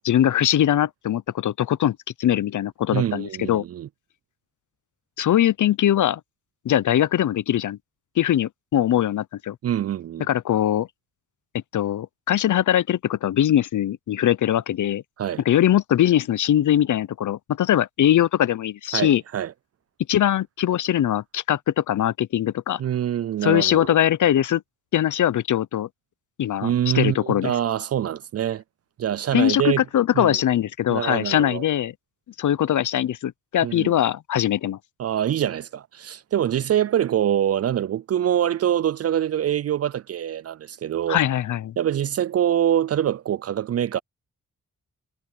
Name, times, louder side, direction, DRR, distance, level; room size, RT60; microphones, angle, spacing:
voice 1, 0.1-3.6 5.2-6.2 6.6-7.8 8.2-9.6 10.3-10.9 11.7-15.0 15.5-19.2 20.1-22.8 23.4-24.6 24.9-25.9 26.4-27.5 29.3-31.9 32.4-34.8 41.1-41.7, left 11 dB, 70° left, 0.7 m, -21 dB
voice 2, 2.9-3.9 9.6-10.3 15.2-15.4 18.9-19.5 22.8-24.0 26.6-28.6 29.0-29.8 30.1-30.4 30.9-31.6 33.6-33.9 35.0-41.2 41.8-44.0, right 10 dB, 50° right, 0.4 m, -24 dB
cardioid pair, 65°, 32 cm